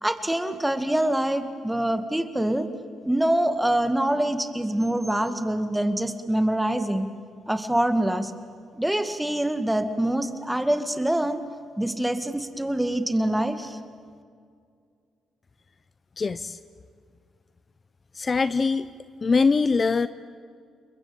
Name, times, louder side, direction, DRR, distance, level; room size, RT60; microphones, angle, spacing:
voice 1, 0.0-2.7 3.0-7.1 7.5-8.3 8.8-11.4 11.8-13.8, right 1 dB, 5° right, 9 dB, 2.1 m, -25 dB
voice 2, 16.2-16.6 18.1-18.9 19.2-20.1, left 4 dB, 35° left, 14 dB, 0.7 m, -22 dB
29.5 x 21.5 x 8.9 m, 2.2 s
cardioid pair, 90°, 0 cm